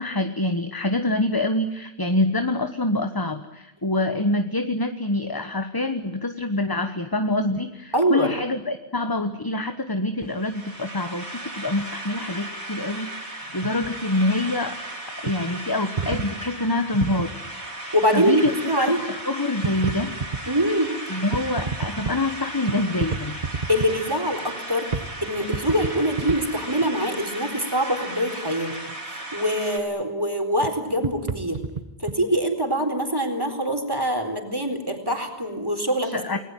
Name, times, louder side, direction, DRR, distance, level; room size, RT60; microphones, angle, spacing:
voice 1, 0.0-14.8 15.2-17.3 18.1-20.1 21.1-23.4 36.0-36.4, left 2 dB, 20° left, 8 dB, 1.2 m, -26 dB
voice 2, 7.9-8.3 17.9-19.0 20.5-20.9 23.7-24.9 25.2-28.8 29.3-31.6 32.0-36.2, equal, 20° right, 6 dB, 4.1 m, -24 dB
sound 1, 10.2-29.8, right 1 dB, 80° right, 5.4 m, -36 dB
sound 2, 13.5-14.0 14.5-14.6 15.3-15.4 16.0-17.3 18.4-18.6 19.0-19.1 19.6-20.4 21.2-22.2 22.7-23.9 24.6-24.7 24.9-25.1 25.4-26.4 26.8-26.9 28.7-28.9 30.6-30.7 31.0-32.2, right 4 dB, 40° right, 1.4 m, -29 dB
29.0 x 20.0 x 9.2 m, 0.98 s
omnidirectional pair, 1.1 m